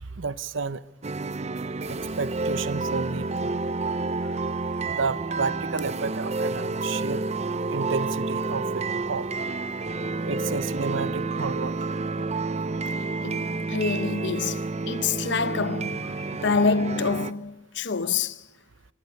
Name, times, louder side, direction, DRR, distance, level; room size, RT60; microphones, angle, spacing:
voice 1, 0.2-0.8 1.9-3.5 4.9-7.2 7.7-9.3 10.2-11.8 12.6-13.0, right 4 dB, 85° right, 0.9 m, -31 dB
sound 1, 1.0-17.3, right 3 dB, 35° right, 0.7 m, -29 dB
sound 2, 3.1-12.5, left 1 dB, 85° left, 7.1 m, -57 dB
voice 2, 13.2-18.4, left 4 dB, 65° left, 0.8 m, -27 dB
25.5 x 18.0 x 6.6 m
head